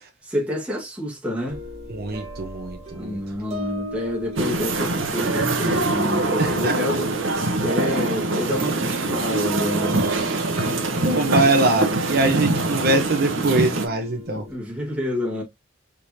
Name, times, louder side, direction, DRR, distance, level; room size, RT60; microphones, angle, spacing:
voice 1, 0.2-1.6 2.9-7.1 7.6-10.1 11.1-11.6 14.3-15.4, left 1 dB, 5° right, 1.7 m, -28 dB
sound 1, 1.5-14.6, equal, 35° right, 1.3 m, -37 dB
voice 2, 1.9-3.2 6.4-7.0 10.1-10.3 11.0-14.4, right 2 dB, 55° right, 0.9 m, -23 dB
sound 2, 4.4-13.9, right 2 dB, 90° right, 1.1 m, -24 dB
4.8 x 3.8 x 2.8 m
head